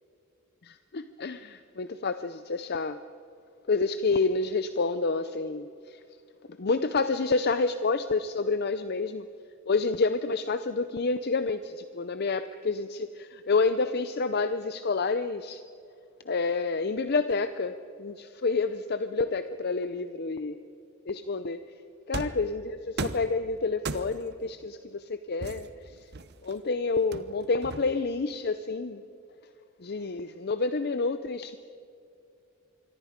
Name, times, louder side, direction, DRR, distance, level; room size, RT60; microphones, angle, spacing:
voice 1, 0.6-3.0 3.7-6.0 6.6-9.3 9.7-15.6 16.3-20.6 21.1-21.6 22.1-26.1 26.4-29.0 29.8-31.6, left 4 dB, 50° left, 11 dB, 0.6 m, -29 dB
sound 1, 22.1-22.5 23.0-23.3 23.8-24.3 25.4-26.5 27.1-28.1, right 3 dB, 50° right, 0.9 m, -36 dB
26.5 x 23.5 x 5.2 m, 2.6 s
head